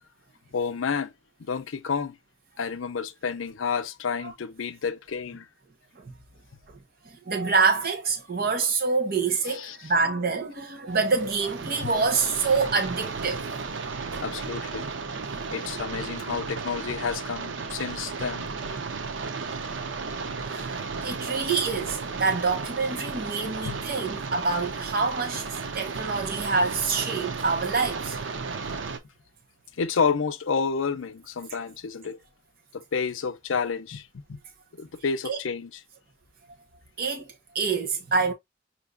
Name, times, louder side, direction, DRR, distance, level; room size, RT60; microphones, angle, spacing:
voice 1, 0.5-1.1 1.4-2.2 2.6-5.5 9.5-9.8 11.8-11.9 14.2-14.9 15.5-18.5 23.6-23.8 29.8-32.2 32.7-34.4 34.8-35.7, left 5 dB, 80° left, 0.6 m, -30 dB
voice 2, 7.1-13.7 15.3-15.4 19.8-19.9 20.4-28.2 35.2-35.4 37.0-38.3, right 4 dB, 50° right, 1.1 m, -26 dB
sound 1, 10.9-29.0, right 4 dB, 70° right, 0.7 m, -34 dB
5.9 x 2.7 x 2.5 m
head